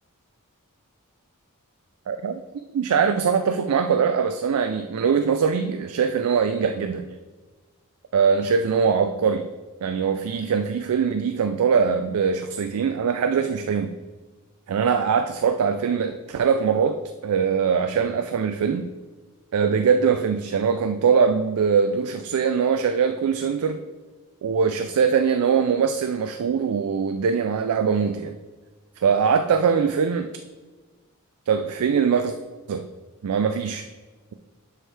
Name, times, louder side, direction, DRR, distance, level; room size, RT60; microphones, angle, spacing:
voice 1, 2.1-2.4 2.7-7.2 8.1-9.5 9.8-13.9 14.7-18.9 19.5-23.8 24.4-28.4 29.0-30.3 31.5-32.3 32.7-32.9 33.2-33.9, right 6 dB, 80° right, 8 dB, 0.4 m, -22 dB
11.0 x 4.6 x 3.3 m, 1.3 s
head